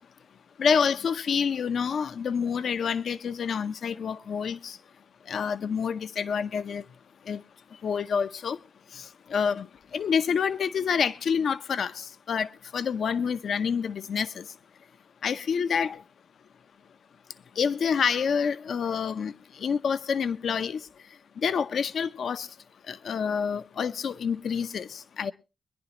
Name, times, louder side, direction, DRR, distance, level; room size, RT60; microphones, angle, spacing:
voice 1, 0.6-4.8 5.3-6.8 7.3-7.4 7.8-8.6 8.9-9.7 9.9-14.4 15.2-16.0 17.6-19.3 19.6-20.8 21.4-22.5 22.9-25.3, left 6 dB, 70° left, 0.7 m, -28 dB
23.5 x 10.5 x 2.9 m
cardioid pair, 95°, 0 cm